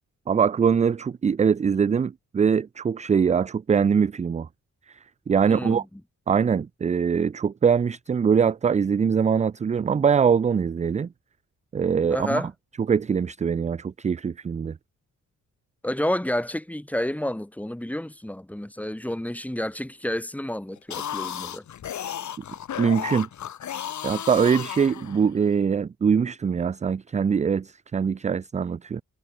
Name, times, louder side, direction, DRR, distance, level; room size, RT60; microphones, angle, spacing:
voice 1, 0.3-4.5 4.9-5.0 5.3-5.8 6.3-11.1 11.7-12.4 12.9-14.8 22.8-23.3 24.0-29.0, right 6 dB, 25° right, 0.4 m, -23 dB
voice 2, 5.4-5.8 12.1-12.5 15.8-21.6, left 1 dB, 5° left, 3.0 m, -30 dB
sound 1, 20.8-25.5, left 10 dB, 60° left, 1.4 m, -34 dB
wide cardioid pair, 135°, 32 cm